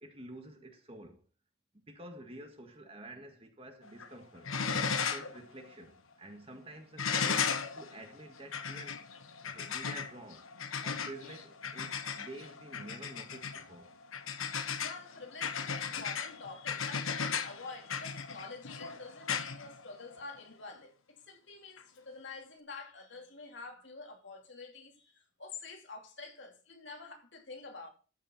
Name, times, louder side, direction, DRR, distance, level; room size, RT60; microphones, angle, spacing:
voice 1, 0.0-1.2 1.9-4.5 5.1-9.1 9.4-10.5 10.8-13.9, right 1 dB, 30° right, 1.8 m, -49 dB
sound 1, 3.8-4.1 4.4-5.4 5.7-5.8 7.0-20.4 21.8-21.9, left 6 dB, 90° left, 1.2 m, -36 dB
voice 2, 14.8-27.9, left 4 dB, 60° left, 2.5 m, -47 dB
13.5 x 6.9 x 4.3 m
head